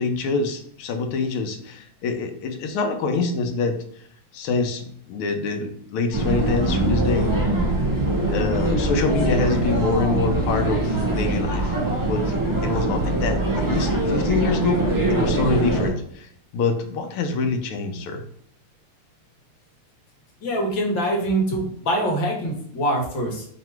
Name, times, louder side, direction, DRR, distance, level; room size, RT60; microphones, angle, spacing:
voice 1, 0.0-3.8 4.3-7.3 8.3-12.3 12.6-14.8 15.1-16.3 16.5-18.2, left 3 dB, 80° left, 5 dB, 1.6 m, -25 dB
sound 1, 6.1-15.9, right 2 dB, 20° right, 0.5 m, -23 dB
voice 2, 20.4-23.5, right 1 dB, 65° left, 0 dB, 1.8 m, -24 dB
3.9 x 3.0 x 4.5 m, 0.65 s
omnidirectional pair, 2.4 m